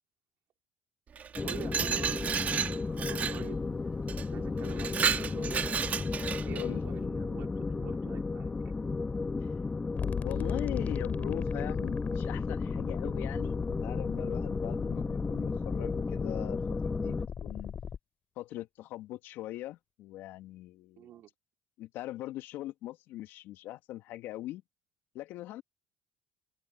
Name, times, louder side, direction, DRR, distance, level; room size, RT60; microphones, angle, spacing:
Glass, 1.2-3.4 4.1-4.2 4.6-6.7, right 7 dB, 40° right, 3.2 m, -32 dB
sound 1, 1.4-17.3, left 3 dB, 20° left, 2.4 m, -34 dB
voice 1, 1.4-3.6 4.3-5.7 6.5-8.5 21.0-21.3, right 12 dB, 60° right, 4.6 m, -46 dB
sound 2, 10.0-18.0, left 7 dB, 40° left, 7.5 m, -37 dB
voice 2, 10.2-17.7 18.4-21.1 21.8-24.6 25.1-25.6, left 15 dB, 70° left, 3.0 m, -41 dB
open air
supercardioid pair, 90°, 4 cm